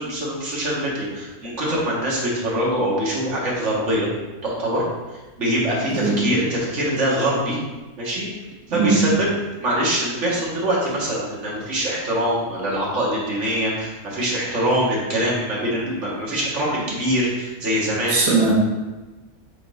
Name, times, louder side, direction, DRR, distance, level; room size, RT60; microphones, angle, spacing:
voice 1, 0.0-4.1 4.4-4.8 5.4-7.6 8.0-8.3 8.7-9.3 9.6-18.3, equal, 50° right, -5 dB, 2.0 m, -23 dB
voice 2, 5.9-6.3 8.7-9.2 18.1-18.5, right 4 dB, 90° right, -3 dB, 1.6 m, -19 dB
7.6 x 3.7 x 3.7 m, 1.1 s
omnidirectional pair, 1.7 m